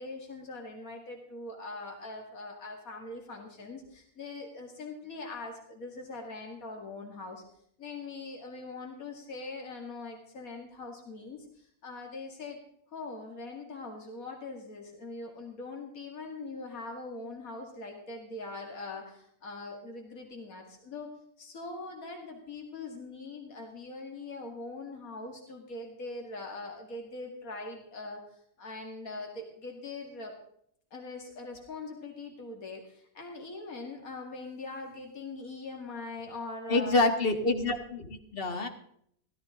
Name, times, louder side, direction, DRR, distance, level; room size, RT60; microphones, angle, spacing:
voice 1, 0.0-7.4 7.8-12.6 12.9-28.2 28.6-30.3 30.9-37.0 37.6-37.8, left 3 dB, 75° left, 2 dB, 2.5 m, -42 dB
voice 2, 36.7-38.7, left 2 dB, 40° left, 6 dB, 1.8 m, -27 dB
17.0 x 13.5 x 3.7 m, 0.68 s
omnidirectional pair, 1.5 m